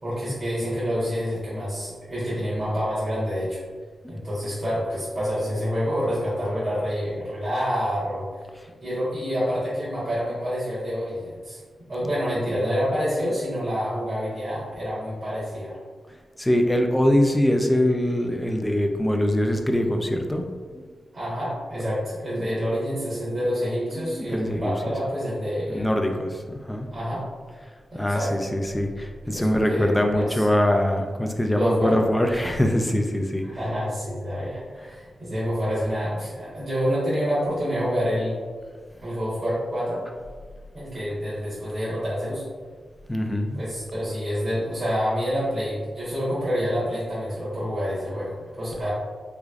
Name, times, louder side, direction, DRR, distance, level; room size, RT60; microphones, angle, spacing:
voice 1, 0.0-3.6 4.1-8.3 8.8-11.6 11.9-15.8 21.1-26.1 26.9-27.2 27.9-28.5 29.3-30.4 31.5-32.0 33.4-38.4 39.0-40.0 40.7-42.4 43.5-48.9, equal, 35° right, -11 dB, 1.3 m, -27 dB
voice 2, 16.4-20.4 20.7-20.9 22.4-22.5 23.3-23.5 23.9-25.0 25.7-26.9 27.9-33.7 43.1-43.6, left 1 dB, 10° left, 4 dB, 0.4 m, -23 dB
3.5 x 3.2 x 2.4 m, 1.5 s
wide cardioid pair, 125°, 0 cm